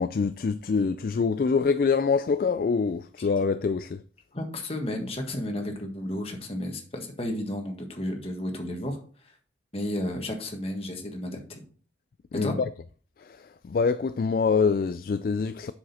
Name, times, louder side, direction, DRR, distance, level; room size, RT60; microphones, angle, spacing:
voice 1, 0.0-4.0 12.3-12.7 13.2-15.7, left 5 dB, 50° left, 0.3 m, -25 dB
voice 2, 4.3-9.0 9.7-11.6 12.4-12.6, left 1 dB, 30° left, 1.6 m, -32 dB
7.5 x 6.4 x 4.2 m
head